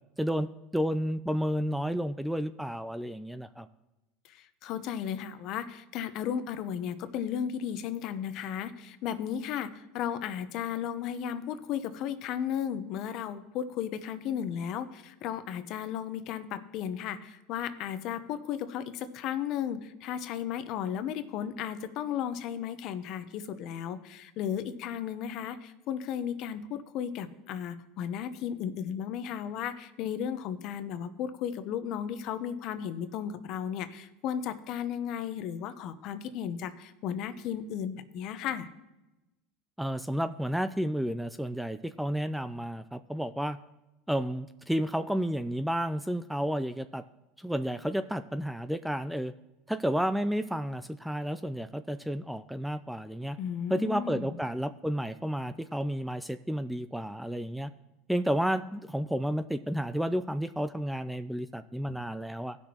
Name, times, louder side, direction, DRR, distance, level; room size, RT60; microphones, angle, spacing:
voice 1, 0.2-3.7 39.8-43.6 44.1-47.0 47.4-49.3 49.7-53.4 53.7-57.7 58.1-62.6, equal, ahead, 12 dB, 0.3 m, -31 dB
voice 2, 4.2-38.7 53.4-54.3, left 9 dB, 55° left, 11 dB, 0.8 m, -35 dB
17.5 x 6.2 x 2.9 m, 1.0 s
supercardioid pair, 120°, 0 cm